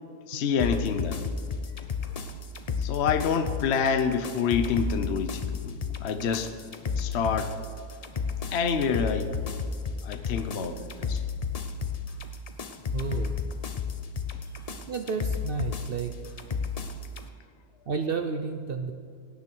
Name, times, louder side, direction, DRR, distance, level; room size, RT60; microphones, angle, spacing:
voice 1, 0.3-1.2 2.8-6.5 7.0-7.6 8.5-9.3 10.0-11.2, left 6 dB, 55° left, 8 dB, 0.8 m, -27 dB
sound 1, 0.6-17.3, left 5 dB, 75° left, 0.3 m, -32 dB
voice 2, 12.9-13.3 14.9-16.2 17.9-18.9, right 5 dB, 65° right, 7 dB, 0.5 m, -31 dB
17.5 x 9.6 x 4.5 m, 2.3 s
omnidirectional pair, 1.7 m